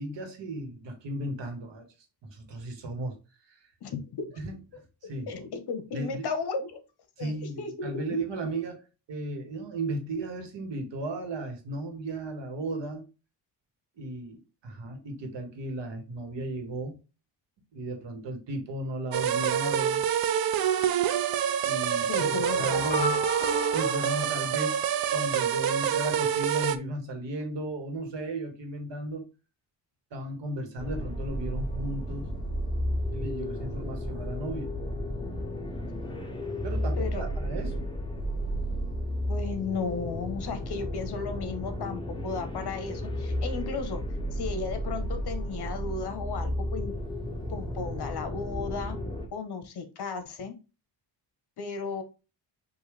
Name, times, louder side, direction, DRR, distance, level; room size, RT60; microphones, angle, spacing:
voice 1, 0.0-1.9 2.2-3.2 4.4-5.3 5.9-6.3 7.2-8.8 9.1-13.0 14.0-17.0 17.7-20.0 21.6-23.2 23.7-24.8 25.1-29.3 30.1-32.3 33.1-34.7 36.6-37.9, right 1 dB, 75° right, 1.6 m, -35 dB
voice 2, 3.8-4.4 5.0-6.8 7.2-8.2 22.0-22.8 37.0-37.3 39.3-44.0 44.3-46.9 47.5-49.0 49.3-50.5 51.6-52.0, left 4 dB, 60° left, 1.1 m, -35 dB
sound 1, 19.1-26.8, right 9 dB, 55° right, 0.5 m, -26 dB
sound 2, 22.2-25.3, left 2 dB, 45° left, 2.0 m, -35 dB
sound 3, 30.8-49.3, equal, 10° left, 0.8 m, -33 dB
5.5 x 2.7 x 3.2 m
wide cardioid pair, 145°, 44 cm